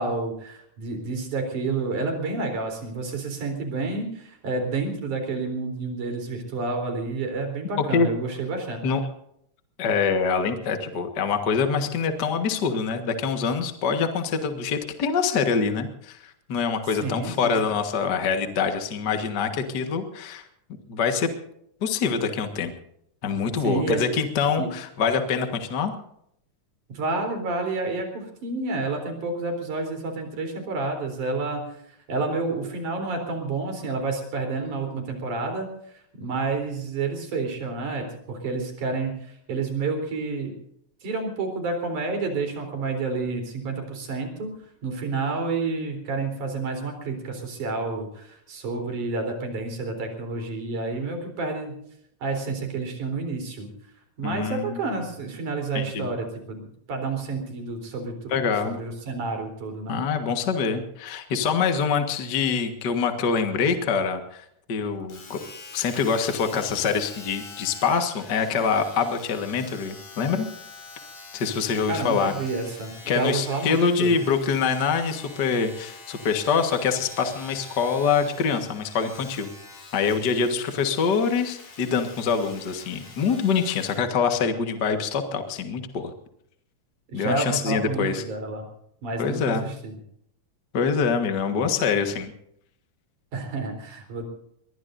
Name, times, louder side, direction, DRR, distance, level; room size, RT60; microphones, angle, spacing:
voice 1, 0.0-8.8 17.0-17.6 23.6-24.1 24.6-24.7 26.9-31.8 32.1-35.7 36.1-40.5 41.0-44.5 44.8-51.8 52.2-53.7 54.2-58.4 58.7-60.0 71.9-74.1 87.1-88.7 89.0-90.0 93.3-94.3, right 3 dB, 85° right, 4 dB, 5.3 m, -29 dB
voice 2, 7.8-8.1 8.8-9.0 9.8-20.4 20.9-21.3 21.8-22.7 23.2-25.9 54.2-54.8 55.7-56.1 58.3-58.8 59.9-65.4 65.7-70.5 71.3-72.3 73.1-79.5 79.9-86.1 87.1-88.2 89.2-89.6 90.7-92.3, left 5 dB, 40° left, 6 dB, 1.7 m, -25 dB
Domestic sounds home sounds, 65.1-84.1 84.8-84.9, left 3 dB, 90° left, 5.6 m, -45 dB
22.5 x 20.5 x 2.7 m, 0.73 s
omnidirectional pair, 3.4 m